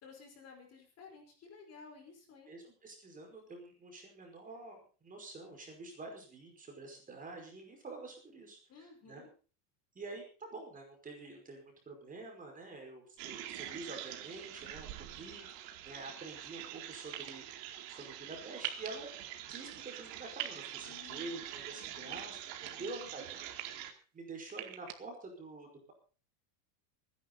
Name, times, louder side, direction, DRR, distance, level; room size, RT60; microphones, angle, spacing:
voice 1, 0.0-2.6 8.7-9.3 20.9-21.4 21.7-22.3 22.8-23.1, left 5 dB, 30° left, 4 dB, 5.0 m, -55 dB
voice 2, 2.5-9.2 10.0-17.4 17.9-19.1 19.5-23.5 24.1-25.9, right 3 dB, 15° right, 3 dB, 5.2 m, -47 dB
sound 1, 13.2-23.9, right 12 dB, 55° right, 2.7 m, -46 dB
sound 2, 17.1-17.3 18.6-18.9 20.4-20.6 22.1-22.7 23.3-23.6 24.5-24.9, right 13 dB, 70° right, 2.1 m, -40 dB
24.5 x 11.0 x 4.1 m, 0.37 s
supercardioid pair, 150°, 48 cm